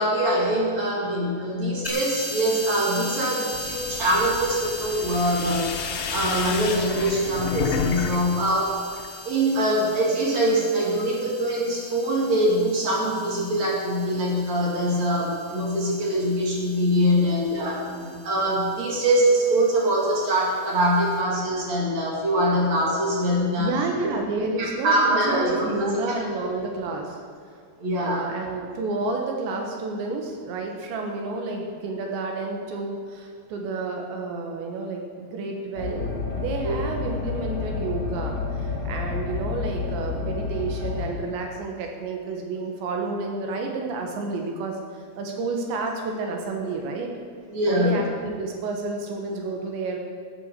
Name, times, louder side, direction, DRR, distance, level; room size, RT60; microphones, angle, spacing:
voice 1, 0.0-5.7 6.1-8.8 9.2-17.9 18.2-23.7 24.0-24.1 24.6-25.9 27.8-28.3 36.6-36.8 47.5-48.0, right 1 dB, 45° right, -3 dB, 3.0 m, -23 dB
sound 1, 1.8-21.2, left 1 dB, 10° left, 0.8 m, -39 dB
sound 2, 3.5-8.2 8.5-9.1, left 7 dB, 80° left, 3.1 m, -31 dB
voice 2, 17.9-18.3 23.6-27.2 28.0-38.4 38.9-44.8 45.2-47.1 47.7-50.0, right 3 dB, 90° right, 1 dB, 3.7 m, -30 dB
sound 3, 35.8-41.1, left 4 dB, 45° left, 2.7 m, -30 dB
15.5 x 8.7 x 6.8 m, 2.1 s
omnidirectional pair, 5.0 m